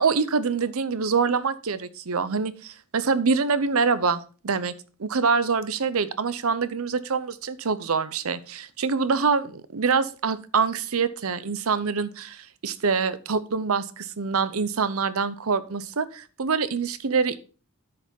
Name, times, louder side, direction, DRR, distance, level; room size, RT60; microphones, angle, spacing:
voice 1, 0.0-4.7 5.0-17.4, right 5 dB, 70° right, 15 dB, 0.7 m, -25 dB
9.4 x 5.2 x 5.2 m, 0.37 s
head